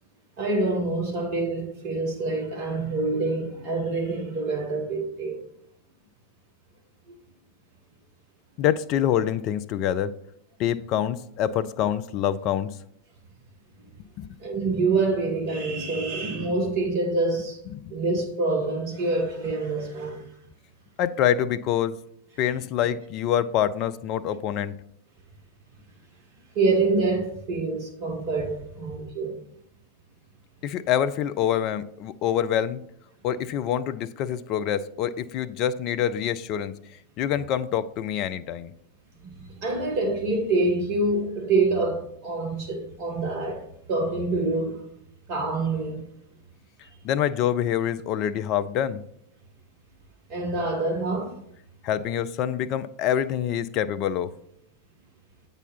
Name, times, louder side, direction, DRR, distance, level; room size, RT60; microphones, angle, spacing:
voice 1, 0.4-5.4 7.1-7.2 14.4-17.6 17.9-20.3 26.5-29.4 39.4-44.8 45.3-46.1 50.3-51.3, right 3 dB, 50° right, 1.4 m, -26 dB
voice 2, 8.6-10.1 10.6-12.7 14.2-14.3 17.7-17.9 21.0-22.0 22.4-24.7 30.6-32.8 33.2-36.7 37.2-38.7 47.0-49.0 51.8-54.3, left 10 dB, 40° left, 0.4 m, -26 dB
8.2 x 4.0 x 5.6 m
figure-of-eight pair, 90°, 0 cm